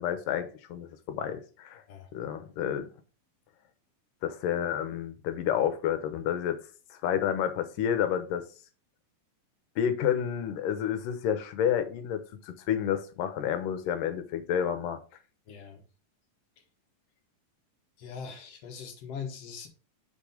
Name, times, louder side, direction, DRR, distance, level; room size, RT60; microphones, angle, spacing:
voice 1, 0.0-1.8 2.1-2.9 4.2-6.6 6.9-8.5 9.8-15.0, left 9 dB, 75° left, 2.5 m, -30 dB
voice 2, 15.5-15.8 16.6-16.7 18.0-19.7, left 6 dB, 55° left, 2.1 m, -41 dB
6.4 x 5.2 x 5.0 m
omnidirectional pair, 4.2 m